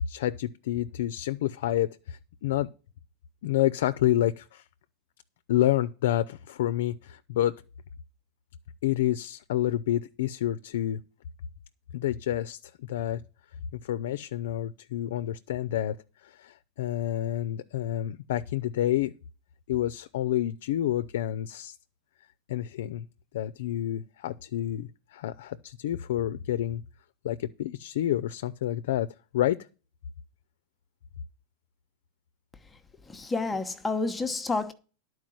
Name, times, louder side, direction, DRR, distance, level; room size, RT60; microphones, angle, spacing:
voice 1, 0.1-2.7 3.4-4.6 5.5-7.6 8.8-11.0 11.9-13.2 13.7-19.1 19.7-21.8 22.5-23.1 23.3-26.8 27.2-29.6, left 12 dB, 75° left, 0.5 m, -29 dB
voice 2, 33.1-34.7, left 3 dB, 10° left, 0.9 m, -29 dB
11.0 x 4.7 x 7.6 m
supercardioid pair, 135°, 0 cm